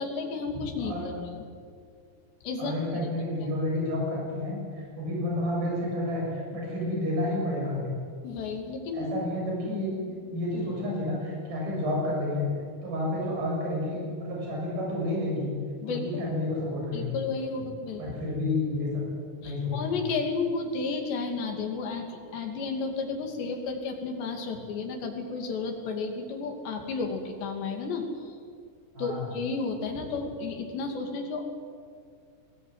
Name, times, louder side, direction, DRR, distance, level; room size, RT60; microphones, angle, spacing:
voice 1, 0.0-1.4 2.4-3.1 8.2-9.1 15.8-16.3 16.9-18.1 19.4-28.1 29.0-31.4, left 4 dB, 65° left, 3 dB, 4.7 m, -32 dB
voice 2, 0.8-1.1 2.6-8.0 8.9-12.5 12.8-15.5 15.8-17.2 18.0-19.0 19.4-20.0 29.0-29.3, left 1 dB, 50° right, -3 dB, 8.9 m, -30 dB
21.5 x 19.0 x 9.4 m, 2.1 s
omnidirectional pair, 5.5 m